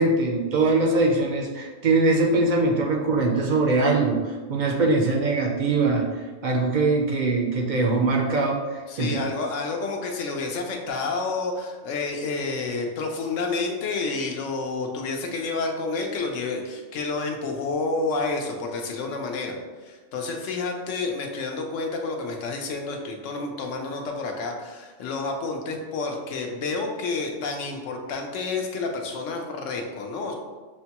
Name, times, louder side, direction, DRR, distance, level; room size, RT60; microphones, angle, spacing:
voice 1, 0.0-8.6 9.0-9.2, right 3 dB, 60° right, 1 dB, 0.5 m, -22 dB
voice 2, 8.9-19.6 19.8-30.3, left 3 dB, 80° left, 2 dB, 1.0 m, -29 dB
6.2 x 2.2 x 2.8 m, 1.4 s
omnidirectional pair, 1.3 m